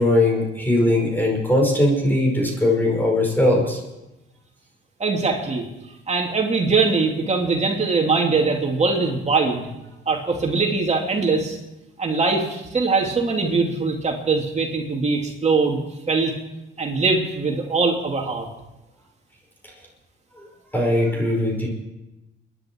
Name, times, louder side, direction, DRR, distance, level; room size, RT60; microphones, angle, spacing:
voice 1, 0.0-3.8 20.4-20.5 20.7-21.7, left 1 dB, 10° left, 0 dB, 5.2 m, -20 dB
voice 2, 5.0-5.7 6.1-9.7 10.1-11.6 12.0-15.8 16.1-16.3 16.8-18.5, right 4 dB, 35° right, 1 dB, 2.9 m, -22 dB
28.0 x 11.0 x 4.7 m, 0.98 s
cardioid pair, 90°, 20 cm